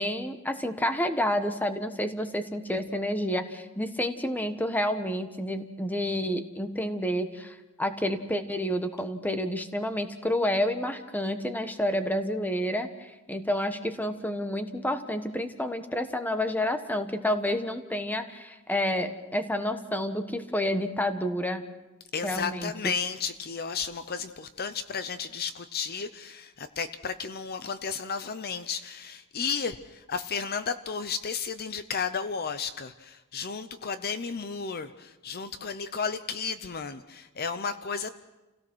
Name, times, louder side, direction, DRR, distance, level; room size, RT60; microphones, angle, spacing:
voice 1, 0.0-21.6 22.2-22.7, left 1 dB, 10° left, 8 dB, 1.3 m, -29 dB
voice 2, 22.1-38.1, left 5 dB, 45° left, 11 dB, 0.7 m, -33 dB
29.0 x 17.0 x 6.3 m, 1.1 s
head